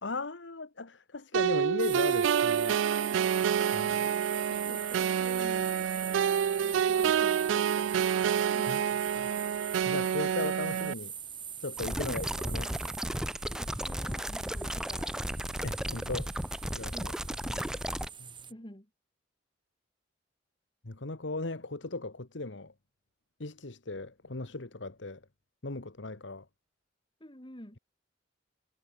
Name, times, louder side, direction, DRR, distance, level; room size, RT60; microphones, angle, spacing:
voice 1, 0.0-2.8 3.7-4.1 8.7-8.8 9.9-11.1 11.6-12.8 15.6-16.3 16.8-16.9 17.5-17.8 18.2-18.3 20.8-22.7 23.4-25.2 25.6-26.5, left 2 dB, 85° left, 1.6 m, -37 dB
sound 1, 1.3-10.9, right 8 dB, 90° right, 0.3 m, -28 dB
sound 2, 1.8-18.5, right 8 dB, 25° right, 2.1 m, -42 dB
voice 2, 2.9-3.3 4.3-6.1 6.6-8.0 8.4-9.0 12.0-12.3 13.5-15.2 16.9-17.2 18.5-18.9 27.2-27.8, left 1 dB, 25° left, 3.6 m, -49 dB
sound 3, 11.8-18.1, equal, 5° right, 3.1 m, -34 dB
head